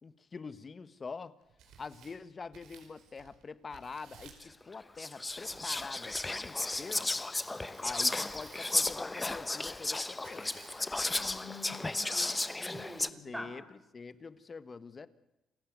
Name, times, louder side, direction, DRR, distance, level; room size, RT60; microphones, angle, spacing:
voice 1, 0.0-1.3 1.8-7.1 7.8-10.5 13.2-15.1, left 4 dB, 35° left, 15 dB, 1.4 m, -45 dB
Tearing, 1.4-3.4 3.7-4.5 5.5-9.0 10.2-11.0, right 7 dB, 85° right, 5.0 m, -57 dB
Whispering, 4.4-4.5 5.0-13.1, left 2 dB, 15° left, 1.0 m, -34 dB
voice 2, 11.1-13.5, left 1 dB, 5° right, 4 dB, 6.4 m, -45 dB
28.5 x 15.5 x 9.5 m, 0.93 s
cardioid pair, 90°, 0 cm